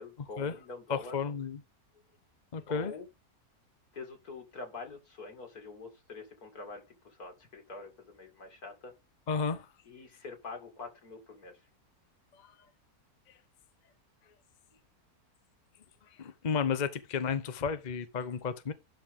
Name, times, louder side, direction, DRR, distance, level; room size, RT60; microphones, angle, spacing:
voice 1, 0.0-1.1 2.7-3.1 3.9-8.9 9.8-11.6, left 3 dB, 75° left, 3.0 m, -45 dB
voice 2, 0.9-1.6 2.5-2.9 9.3-9.7 12.4-12.5 16.2-18.7, left 6 dB, 35° left, 0.8 m, -32 dB
11.5 x 4.5 x 3.7 m
omnidirectional pair, 1.6 m